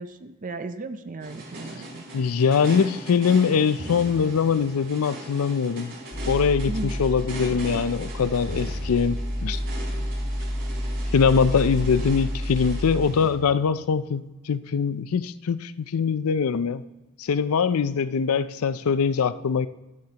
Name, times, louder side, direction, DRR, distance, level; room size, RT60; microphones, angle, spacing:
voice 1, 0.0-2.1 6.7-6.9, right 3 dB, 40° right, 10 dB, 0.5 m, -35 dB
sound 1, 1.2-13.9, right 1 dB, 60° right, 3.9 m, -39 dB
voice 2, 2.1-5.9 6.3-9.6 11.1-16.8 17.2-19.7, left 6 dB, 85° left, 15 dB, 0.5 m, -23 dB
sound 2, 6.1-13.0, equal, 30° left, 1.3 m, -30 dB
14.5 x 12.5 x 2.9 m, 1.1 s
head